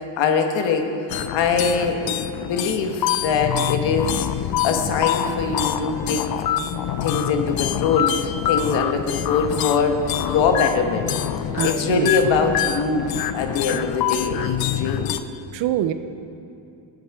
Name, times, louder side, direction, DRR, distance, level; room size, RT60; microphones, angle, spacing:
voice 1, 0.1-0.9 1.3-4.3 4.6-6.2 7.0-11.1 11.6-15.1, left 5 dB, 70° left, 5 dB, 1.4 m, -23 dB
sound 1, 1.1-15.2, left 10 dB, 50° left, 0.5 m, -26 dB
voice 2, 11.5-12.1 15.5-15.9, right 12 dB, 65° right, 11 dB, 0.7 m, -24 dB
18.5 x 7.4 x 4.8 m, 2.7 s
cardioid pair, 135°, 47 cm